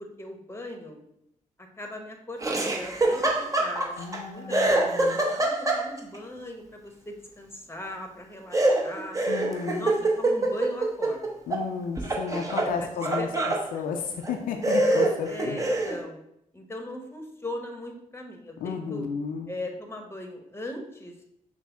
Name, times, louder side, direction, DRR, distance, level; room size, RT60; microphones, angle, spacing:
voice 1, 0.2-1.0 1.8-9.2 9.8-11.4 12.6-12.9 13.2-13.5 15.2-16.2 16.5-19.1 19.5-21.1, left 1 dB, 15° left, 3 dB, 0.9 m, -39 dB
Laughter, 2.4-4.2 4.5-6.2 8.5-11.7 12.0-13.6 14.2-14.3 14.6-16.0, right 2 dB, 25° right, 0.8 m, -25 dB
voice 2, 4.0-5.2 9.3-9.9 11.5-13.3 13.7-15.6 18.6-19.5, left 6 dB, 90° left, 4 dB, 0.4 m, -33 dB
5.8 x 2.0 x 3.4 m, 0.75 s
supercardioid pair, 50°, 14 cm